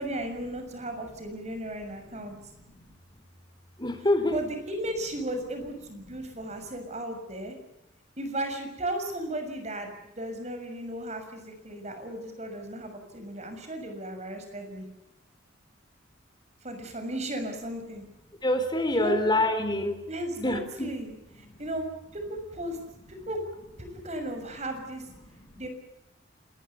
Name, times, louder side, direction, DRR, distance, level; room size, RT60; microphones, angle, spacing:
voice 1, 0.0-2.4 4.3-7.6 8.2-14.9 16.6-18.0 18.9-19.2 20.1-21.8 22.1-22.8 23.3-23.4 23.8-25.0 25.6-25.7, right 1 dB, 35° right, 6 dB, 6.6 m, -35 dB
voice 2, 1.5-2.3 2.6-3.2 3.8-4.4 18.4-20.0 20.4-20.9 21.4-21.5 25.2-25.6, left 1 dB, 20° left, 8 dB, 3.6 m, -28 dB
27.0 x 21.0 x 7.0 m, 0.89 s
head